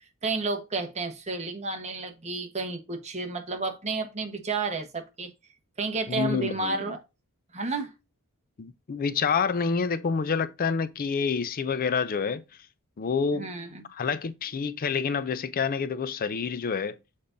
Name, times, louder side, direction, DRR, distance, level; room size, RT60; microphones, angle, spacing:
voice 1, 0.0-5.3 5.8-7.0 7.5-7.9 13.3-13.8, right 3 dB, 30° right, 1.2 m, -31 dB
voice 2, 6.1-6.9 8.6-12.4 13.0-13.5 13.9-17.0, left 5 dB, 40° left, 0.4 m, -28 dB
6.9 x 5.1 x 2.6 m
head